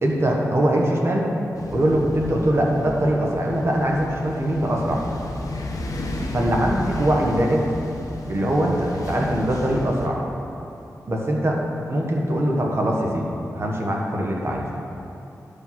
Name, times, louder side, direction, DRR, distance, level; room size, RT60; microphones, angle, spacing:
voice 1, 0.0-1.3 1.7-5.0 6.3-7.7 8.3-10.2 11.1-13.3 13.5-14.7, right 1 dB, 45° right, -1 dB, 1.4 m, -22 dB
sound 1, 1.5-10.1, left 1 dB, 70° left, 1.0 m, -33 dB
10.0 x 5.0 x 5.9 m, 2.8 s
wide cardioid pair, 85°, 6 cm